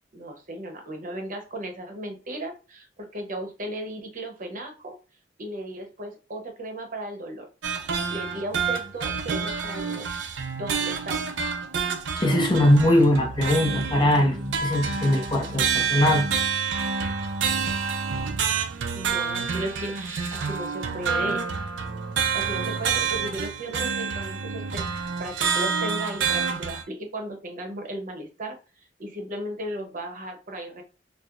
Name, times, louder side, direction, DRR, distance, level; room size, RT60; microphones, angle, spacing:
voice 1, 0.1-5.0 5.4-7.5 8.1-10.1 10.5-11.2 18.9-21.4 22.3-28.6 29.0-30.8, right 1 dB, 45° right, 0.8 m, -35 dB
sound 1, 7.6-26.8, right 5 dB, 85° right, 0.5 m, -28 dB
voice 2, 12.2-16.3, left 1 dB, 25° left, 0.6 m, -21 dB
4.5 x 2.0 x 2.4 m
head